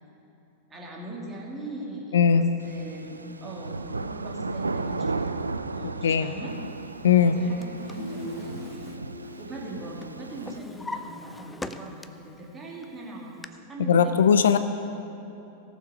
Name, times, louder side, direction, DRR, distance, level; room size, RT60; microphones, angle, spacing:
voice 1, 0.7-5.4 5.7-6.5 7.2-9.0 9.4-14.1, right 1 dB, 15° right, -3 dB, 2.6 m, -40 dB
voice 2, 2.1-2.5 6.0-6.3 7.0-7.3 13.9-14.6, left 7 dB, 65° left, 11 dB, 0.4 m, -19 dB
sound 1, 2.6-10.6, right 3 dB, 80° right, 0.3 m, -35 dB
Drawer open or close, 7.3-9.7 10.0-12.3 12.8-13.5, left 2 dB, 10° left, 0.5 m, -42 dB
Guitar, 8.0-11.6, left 1 dB, 80° left, 1.2 m, -42 dB
17.0 x 7.2 x 5.1 m, 3.0 s
figure-of-eight pair, 90°, 0 cm